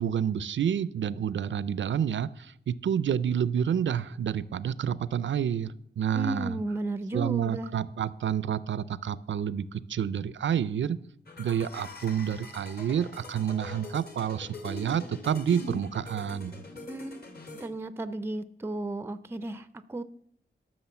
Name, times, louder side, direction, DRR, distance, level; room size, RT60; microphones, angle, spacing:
voice 1, 0.0-6.6 7.1-11.0 11.4-16.5, right 8 dB, 80° right, 18 dB, 0.5 m, -29 dB
voice 2, 6.1-7.7 16.9-17.2 17.6-20.0, right 1 dB, 15° right, 14 dB, 0.4 m, -34 dB
sound 1, 11.3-17.7, left 3 dB, 55° left, 2.2 m, -43 dB
13.0 x 6.3 x 6.9 m, 0.70 s
wide cardioid pair, 150°, 19 cm